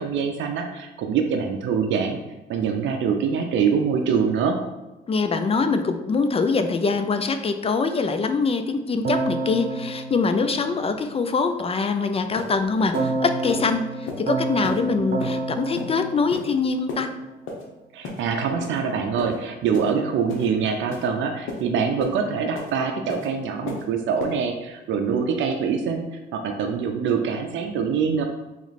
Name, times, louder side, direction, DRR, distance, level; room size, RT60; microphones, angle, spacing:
voice 1, 0.0-2.2 2.5-4.6 17.9-26.0 26.3-28.2, right 6 dB, 70° right, 4 dB, 0.5 m, -24 dB
voice 2, 5.1-17.1, left 4 dB, 30° left, 8 dB, 0.4 m, -24 dB
Keyboard (musical), 9.0-11.4 12.9-17.2, right 2 dB, 50° right, 0.9 m, -29 dB
sound 1, 11.9-12.0 12.4-12.5 12.9-13.1 13.5-13.6 14.1-14.2 14.6-14.8 15.2-15.4 15.8-15.9 16.3-16.5 16.9-17.0 17.5-17.6 18.0-18.2 18.6-18.8 19.2-19.4 19.7-19.9 20.3-20.5 20.9-21.1 21.5-21.6 22.0-22.2 22.6-22.7 23.1-23.3 23.7-23.8 24.2-24.3, left 4 dB, 80° left, 0.9 m, -33 dB
3.1 x 3.0 x 4.1 m, 1.1 s
cardioid pair, 90°, 20 cm